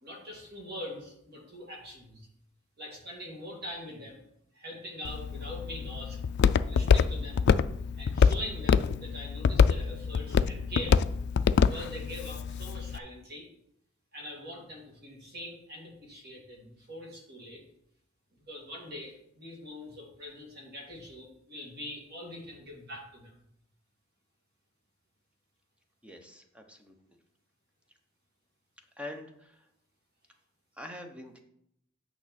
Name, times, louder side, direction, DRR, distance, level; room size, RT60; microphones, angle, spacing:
voice 1, 0.0-2.3 2.8-4.2 4.5-6.2 6.7-7.5 8.0-11.0 11.6-13.5 14.1-17.6 18.5-23.4, left 1 dB, 50° right, -1 dB, 2.3 m, -43 dB
Walk footsteps, 5.0-13.0, left 6 dB, 55° left, 0.3 m, -26 dB
voice 2, 26.0-26.9 29.0-29.3 30.8-31.4, left 1 dB, 5° right, 4 dB, 0.9 m, -43 dB
8.6 x 5.8 x 4.3 m, 0.75 s
head